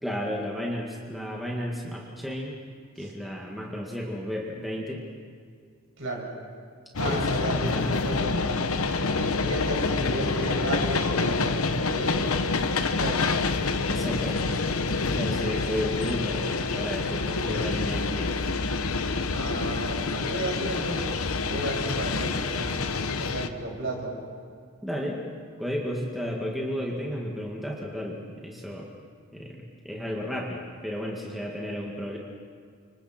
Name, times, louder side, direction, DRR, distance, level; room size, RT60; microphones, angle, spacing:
voice 1, 0.0-2.5 3.0-5.0 7.1-7.2 7.5-8.1 13.9-14.5 15.0-18.4 24.8-25.2 25.6-28.9 29.3-32.2, equal, ahead, -3 dB, 2.0 m, -33 dB
voice 2, 6.0-6.3 7.0-8.5 9.1-13.3 19.3-21.2 21.5-22.7 23.2-24.2, right 1 dB, 60° right, -2 dB, 6.4 m, -33 dB
sound 1, 6.9-23.5, left 3 dB, 80° left, 1.0 m, -27 dB
30.0 x 26.5 x 4.4 m, 2.1 s
head